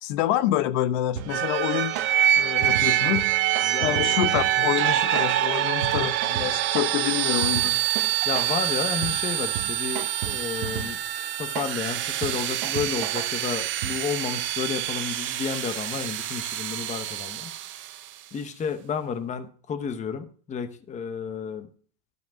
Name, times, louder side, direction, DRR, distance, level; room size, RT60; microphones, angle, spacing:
voice 1, 0.0-1.9 2.4-3.3 3.8-7.8, left 13 dB, 60° left, 0.7 m, -27 dB
sound 1, 1.2-14.3, right 11 dB, 75° right, 1.0 m, -37 dB
sound 2, 1.3-18.0, right 12 dB, 30° right, 0.5 m, -26 dB
voice 2, 3.6-4.2 8.2-11.0 11.4-17.5 18.3-21.7, left 6 dB, 15° left, 0.8 m, -32 dB
12.0 x 5.2 x 5.7 m
supercardioid pair, 135°, 41 cm